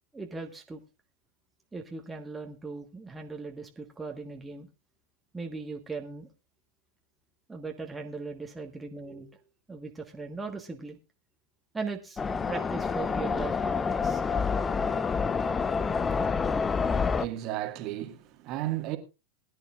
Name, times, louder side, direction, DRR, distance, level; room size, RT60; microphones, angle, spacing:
voice 1, 0.1-0.8 1.7-4.7 5.3-6.3 7.5-9.4 9.7-11.0 11.7-12.2 12.5-14.2, right 4 dB, 10° right, 1.4 m, -38 dB
sound 1, 12.2-17.3, left 5 dB, 15° left, 0.6 m, -28 dB
voice 2, 15.8-16.7 17.1-19.0, right 14 dB, 40° right, 1.8 m, -35 dB
21.0 x 11.5 x 2.5 m
figure-of-eight pair, 90°, 0 cm